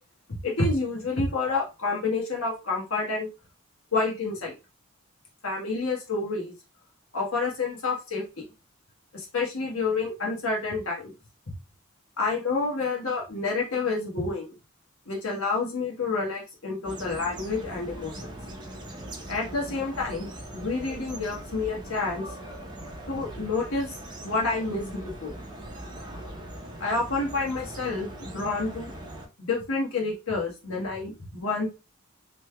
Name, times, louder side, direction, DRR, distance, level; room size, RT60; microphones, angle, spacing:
voice 1, 0.3-3.3 3.9-4.6 5.4-6.5 7.1-8.4 9.1-11.1 12.2-14.5 15.1-18.4 19.3-20.3 20.5-22.2 23.1-23.9 24.2-25.3 26.8-28.9 29.4-31.7, left 3 dB, 85° left, -1 dB, 1.3 m, -29 dB
sound 1, 16.8-29.3, right 1 dB, 20° right, 0.6 m, -40 dB
3.2 x 3.1 x 2.2 m, 0.28 s
head